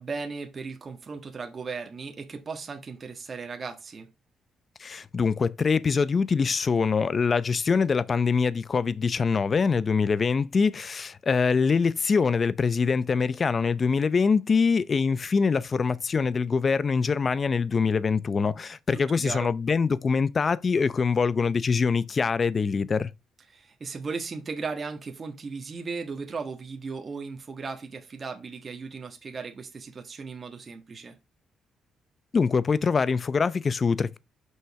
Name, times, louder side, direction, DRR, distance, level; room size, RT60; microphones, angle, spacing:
voice 1, 0.0-4.1 18.9-19.5 23.5-31.2, right 4 dB, 40° right, 1.5 m, -36 dB
voice 2, 4.8-23.1 32.3-34.2, left 5 dB, 40° left, 0.6 m, -24 dB
6.4 x 5.5 x 4.7 m
cardioid pair, 90°, 0 cm